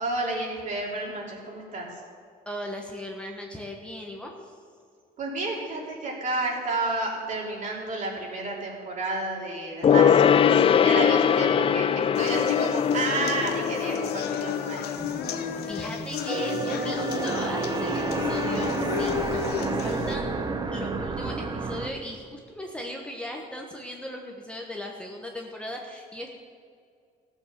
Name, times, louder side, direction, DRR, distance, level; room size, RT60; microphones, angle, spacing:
voice 1, 0.0-2.0 5.2-14.9, right 2 dB, 50° right, -2 dB, 3.3 m, -31 dB
voice 2, 2.4-4.5 15.7-20.3 20.7-26.3, left 1 dB, 5° left, 0 dB, 1.2 m, -38 dB
Gong, 9.8-15.7 16.0-16.1, left 8 dB, 35° left, 0.4 m, -22 dB
sound 1, 12.1-20.1, left 8 dB, 70° left, 0.8 m, -31 dB
sound 2, 14.9-21.9, right 4 dB, 25° right, 0.9 m, -30 dB
14.5 x 7.4 x 6.7 m, 2.3 s
cardioid pair, 110°, 17 cm